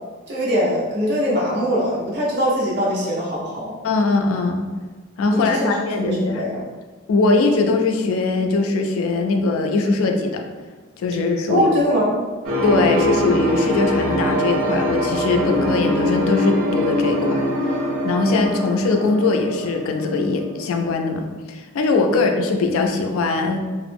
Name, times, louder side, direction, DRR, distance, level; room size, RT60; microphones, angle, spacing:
voice 1, 0.3-3.8 5.3-5.8 6.0-6.7 11.5-12.1, equal, 55° right, -6 dB, 0.8 m, -22 dB
voice 2, 3.8-4.7 5.2-6.4 7.1-10.4 11.0-11.7 12.6-17.5 18.0-23.6, left 3 dB, 85° left, 4 dB, 0.3 m, -21 dB
sound 1, 12.4-20.8, equal, 85° right, 0.6 m, -23 dB
2.4 x 2.0 x 3.3 m, 1.4 s
head